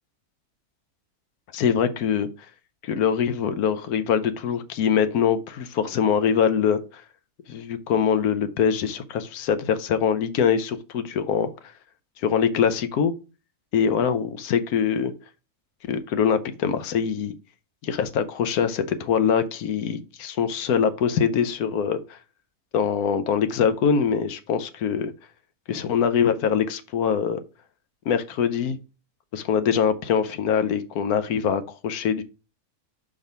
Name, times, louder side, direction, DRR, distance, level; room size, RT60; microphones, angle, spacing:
voice 1, 1.5-2.3 2.8-7.0 7.5-11.5 12.2-13.1 13.7-15.1 15.9-17.3 17.8-22.2 22.7-25.1 25.7-27.4 28.1-28.8 29.3-32.2, left 7 dB, 75° left, 12 dB, 1.2 m, -23 dB
5.3 x 3.7 x 5.4 m, 0.32 s
omnidirectional pair, 1.6 m